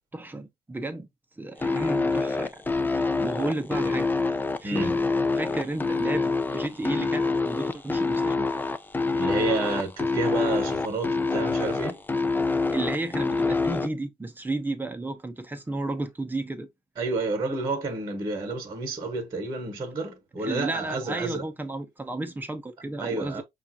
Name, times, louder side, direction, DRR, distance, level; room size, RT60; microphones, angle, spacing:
voice 1, 0.1-1.1 1.4-2.6 2.9-4.1 4.6-5.0 5.3-8.5 12.7-16.7 20.4-23.4, right 2 dB, 10° right, 0.8 m, -32 dB
sound 1, 1.6-13.9, left 3 dB, 10° left, 0.3 m, -26 dB
voice 2, 4.6-4.9 9.1-12.0 17.0-21.5 23.0-23.4, right 3 dB, 25° right, 1.2 m, -30 dB
5.5 x 2.5 x 2.7 m
cardioid pair, 110°, 17 cm